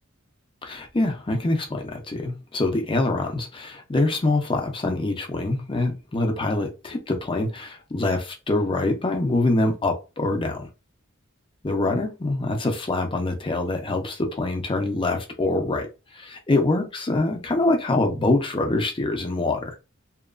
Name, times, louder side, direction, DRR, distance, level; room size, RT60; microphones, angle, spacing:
voice 1, 0.6-10.7 11.6-15.9 16.1-19.7, left 2 dB, 25° left, 0.6 m, -24 dB
2.9 x 2.3 x 2.4 m
head